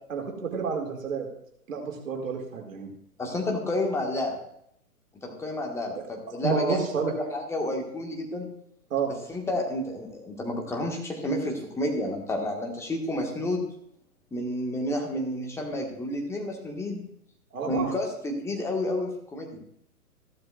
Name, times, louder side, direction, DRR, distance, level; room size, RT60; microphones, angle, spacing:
voice 1, 0.1-1.3 1.7-2.9 6.0-6.1 6.4-7.1 8.9-9.1 17.5-17.9, right 5 dB, 60° right, 1 dB, 2.3 m, -29 dB
voice 2, 3.2-4.4 5.2-6.8 7.1-8.5 9.3-13.6 14.3-17.0 17.7-19.6, left 1 dB, 5° left, 1 dB, 1.5 m, -30 dB
15.0 x 12.0 x 2.4 m, 0.73 s
figure-of-eight pair, 120°, 45 cm